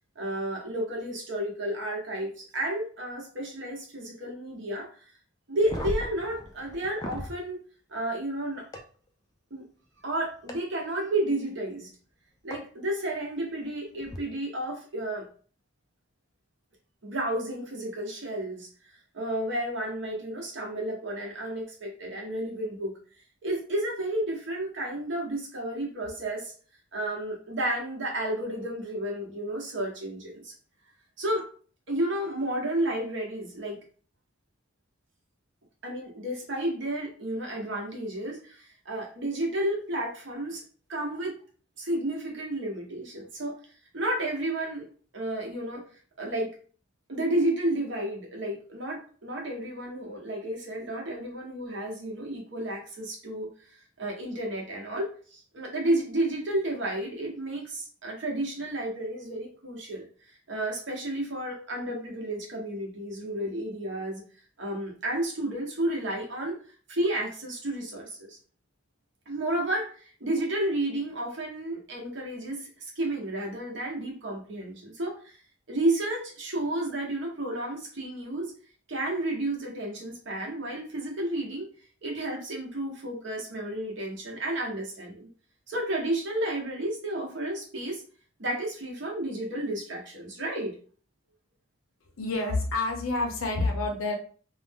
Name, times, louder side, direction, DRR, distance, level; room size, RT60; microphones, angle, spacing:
voice 1, 0.2-4.9 5.5-7.6 7.9-8.6 9.5-9.6 10.0-11.9 12.4-15.3 17.0-18.7 19.1-22.9 23.4-26.5 26.9-30.5 31.2-31.5 31.9-33.8 35.8-40.6 40.9-41.4 41.8-43.6 43.9-44.9 45.1-45.8 46.2-46.5 47.1-53.5 54.0-60.1 60.5-64.2 64.6-66.6 66.9-68.4 69.3-72.7 73.0-75.4 75.7-78.5 78.9-81.7 82.0-85.3 85.7-88.0 88.4-90.7, right 1 dB, 55° right, -1 dB, 0.9 m, -31 dB
sound 1, 5.6-7.3 8.7-8.8 10.5-10.6 12.5-12.6 14.0-14.2, equal, 15° left, 0.3 m, -35 dB
voice 2, 92.2-94.1, left 2 dB, 75° left, 2 dB, 0.7 m, -28 dB
2.5 x 2.0 x 3.4 m, 0.42 s
head